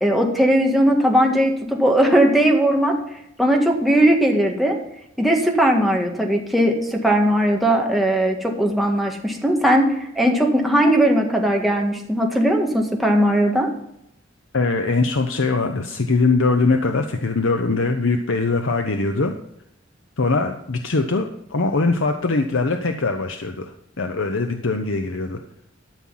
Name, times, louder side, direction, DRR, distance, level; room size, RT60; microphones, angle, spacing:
voice 1, 0.0-2.9 3.4-4.7 5.2-13.7, right 1 dB, ahead, 0 dB, 1.7 m, -18 dB
voice 2, 14.5-19.3 20.2-21.3 21.5-25.4, left 3 dB, 85° left, 5 dB, 0.8 m, -21 dB
12.5 x 6.2 x 5.6 m, 0.78 s
head